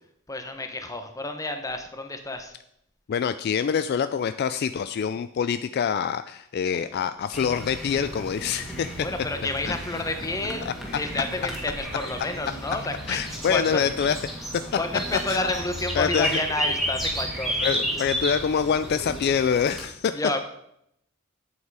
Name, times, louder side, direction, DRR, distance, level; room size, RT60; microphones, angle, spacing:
voice 1, 0.3-2.5 6.7-7.1 9.0-13.8 14.8-17.8 20.1-20.4, left 2 dB, 15° left, 6 dB, 0.9 m, -30 dB
voice 2, 3.1-9.1 10.7-10.8 13.1-14.2 15.3-15.4 16.0-16.3 17.6-20.1, left 7 dB, 50° left, 11 dB, 0.3 m, -25 dB
sound 1, 7.3-19.9, equal, ahead, 1.9 m, -32 dB
8.2 x 8.1 x 4.7 m, 0.76 s
head